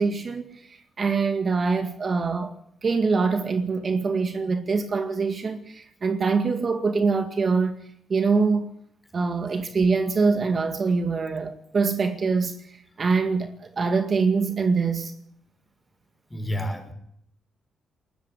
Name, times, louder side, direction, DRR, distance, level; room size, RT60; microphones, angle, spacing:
voice 1, 0.0-2.5 2.8-7.8 8.1-8.7 9.1-15.1, right 4 dB, 45° right, 2.1 m, -24 dB
voice 2, 16.3-16.9, equal, 10° left, 5.8 m, -29 dB
20.0 x 13.5 x 9.8 m
cardioid pair, 80°, 0 cm